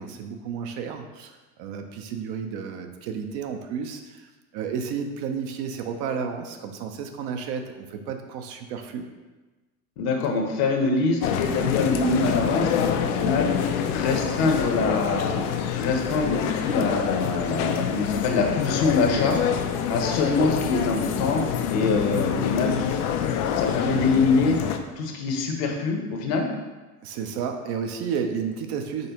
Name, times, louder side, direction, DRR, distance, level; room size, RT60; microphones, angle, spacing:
voice 1, 0.0-9.1 27.0-29.1, right 6 dB, 60° right, 5 dB, 0.7 m, -32 dB
voice 2, 10.0-13.5 13.9-15.4 15.7-19.4 19.9-21.4 21.7-23.0 23.6-24.6 25.0-26.4, left 4 dB, 60° left, 3 dB, 0.9 m, -24 dB
sound 1, 11.2-24.8, left 8 dB, 75° left, 0.6 m, -26 dB
5.4 x 3.3 x 2.9 m, 1.2 s
hypercardioid pair, 85°, 45 cm